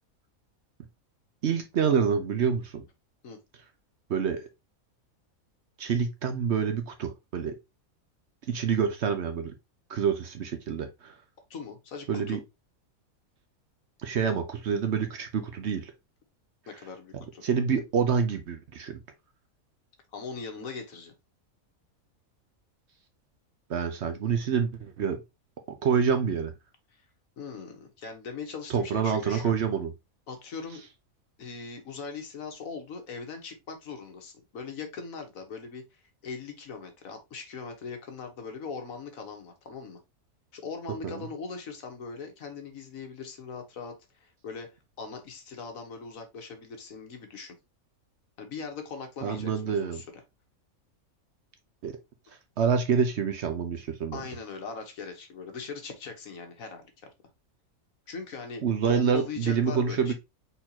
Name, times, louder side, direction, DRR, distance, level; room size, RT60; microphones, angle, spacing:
voice 1, 1.4-2.8 4.1-4.5 5.8-7.6 8.5-9.5 9.9-11.1 12.1-12.4 14.0-15.9 17.1-19.0 23.7-25.2 25.7-26.5 28.7-29.9 41.0-41.2 49.2-50.0 51.8-52.0 52.6-54.2 58.6-60.1, right 6 dB, 60° right, 0.9 m, -27 dB
voice 2, 11.5-12.4 16.7-17.4 20.1-21.1 27.4-29.5 30.3-30.8 31.4-40.0 40.5-47.5 48.4-50.0 54.1-57.1 58.1-60.1, left 5 dB, 75° left, 1.5 m, -40 dB
4.3 x 4.0 x 2.8 m
omnidirectional pair, 1.5 m